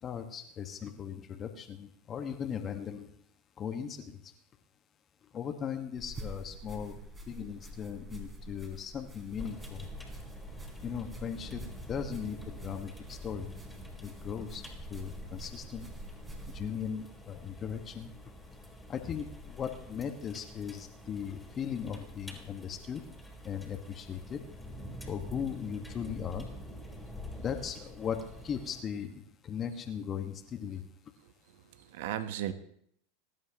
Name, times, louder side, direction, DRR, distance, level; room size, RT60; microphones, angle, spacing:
voice 1, 0.0-3.1 3.6-4.3 5.3-7.0 7.3-9.9 10.8-13.5 14.0-14.6 14.9-15.9 16.5-18.1 18.9-23.0 23.4-24.4 25.1-26.5 27.4-30.8, left 8 dB, 30° left, 6 dB, 1.4 m, -38 dB
sound 1, 6.0-16.7, right 1 dB, 20° right, 3.4 m, -46 dB
sound 2, 9.4-28.8, left 1 dB, 5° left, 3.5 m, -47 dB
voice 2, 31.5-32.5, right 11 dB, 65° right, 11 dB, 1.0 m, -36 dB
22.0 x 11.0 x 2.9 m, 0.68 s
hypercardioid pair, 100°, 0 cm